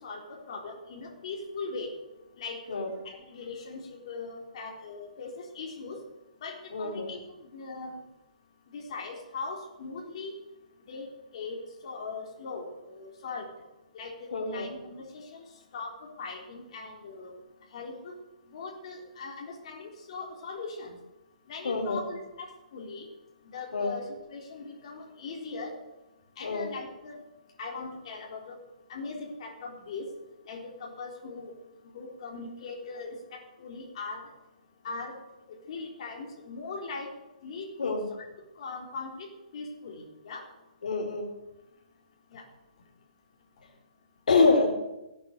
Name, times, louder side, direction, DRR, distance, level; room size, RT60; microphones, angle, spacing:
voice 1, 0.0-1.9 2.4-2.8 3.0-6.0 6.4-7.2 7.5-8.0 8.7-10.3 10.9-11.1 11.3-11.6 11.8-13.5 13.9-15.4 15.7-15.9 16.2-17.3 17.7-18.1 18.5-21.0 21.5-22.5 22.7-23.1 23.5-25.7 26.4-27.2 27.6-28.6 28.9-30.1 30.5-31.5 31.9-34.2 34.8-35.2 35.7-37.1 37.4-38.0 38.6-39.3 39.5-40.4 42.3-42.4, left 4 dB, 50° left, -1 dB, 4.1 m, -40 dB
voice 2, 6.7-7.1 14.3-14.7 21.6-22.0 23.7-23.9 26.4-26.7 37.8-38.0 40.8-41.3 44.3-44.7, left 3 dB, 80° left, 1 dB, 3.6 m, -26 dB
16.5 x 9.4 x 6.7 m, 0.97 s
hypercardioid pair, 155°, 4 cm